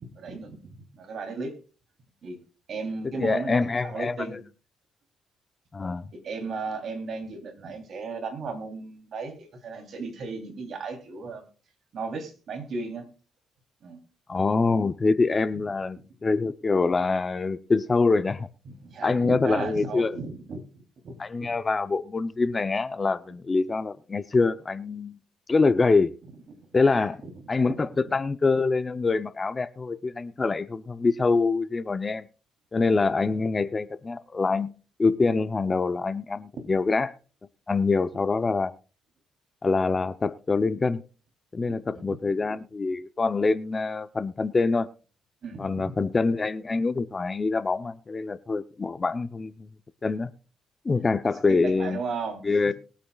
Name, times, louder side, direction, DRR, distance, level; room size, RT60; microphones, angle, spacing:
voice 1, 0.1-1.5 2.2-2.4 2.7-4.4 6.1-11.4 11.9-13.1 13.8-14.0 18.8-21.1 21.4-21.5 26.7-27.1 27.6-28.1 41.7-42.2 45.4-45.9 51.3-52.7, right 4 dB, 60° right, 3.3 m, -35 dB
voice 2, 3.1-4.4 5.7-6.1 14.3-18.5 19.0-20.2 21.2-25.2 25.5-26.1 26.7-27.2 27.5-32.3 32.7-34.7 35.0-37.1 37.7-38.7 39.6-41.0 41.5-44.9 45.6-49.7 50.0-50.3 50.8-52.0 52.4-52.7, left 3 dB, 30° left, 0.7 m, -25 dB
21.5 x 8.6 x 2.4 m
cardioid pair, 90°, 0 cm